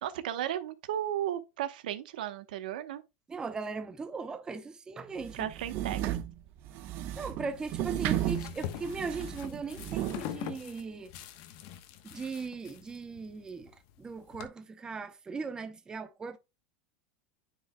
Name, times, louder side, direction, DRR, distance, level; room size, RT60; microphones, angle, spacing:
voice 1, 0.0-3.0 5.3-6.0, right 11 dB, 85° right, 1.0 m, -34 dB
voice 2, 3.3-5.5 7.2-11.1 12.0-16.4, right 4 dB, 15° right, 0.7 m, -38 dB
sound 1, 5.2-10.2, right 13 dB, 50° right, 1.0 m, -34 dB
sound 2, 7.4-14.5, left 11 dB, 60° left, 1.1 m, -44 dB
10.0 x 4.8 x 2.2 m
supercardioid pair, 130°, 5 cm